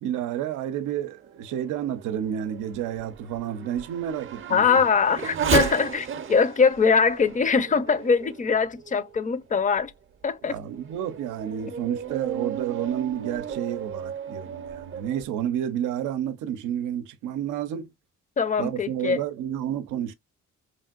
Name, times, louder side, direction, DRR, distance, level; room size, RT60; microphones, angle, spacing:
voice 1, 0.0-4.8 10.4-17.9 18.6-20.1, right 10 dB, 85° right, 0.5 m, -30 dB
Race car auto racing / Accelerating revving vroom, 1.2-9.2 9.8-9.9 10.5-15.2, right 7 dB, 45° right, 0.6 m, -34 dB
voice 2, 4.5-9.9 10.2-10.6 18.4-19.2, left 5 dB, 25° left, 0.4 m, -22 dB
3.1 x 2.6 x 2.2 m
cardioid pair, 90°, 30 cm